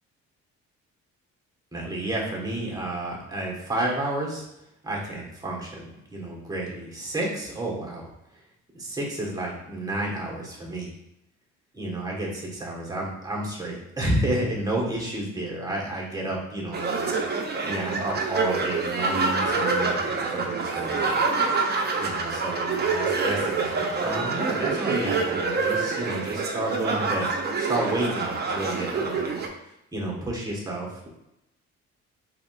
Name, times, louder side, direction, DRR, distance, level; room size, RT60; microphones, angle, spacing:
voice 1, 1.7-4.4 4.8-8.1 8.7-10.9 11.7-21.2 22.0-27.3 27.6-29.4 29.9-31.1, right 1 dB, 10° right, -3 dB, 1.4 m, -31 dB
sound 1, 16.7-29.5, right 4 dB, 35° right, 0.7 m, -26 dB
3.9 x 3.7 x 2.5 m, 0.86 s
cardioid pair, 90°, 30 cm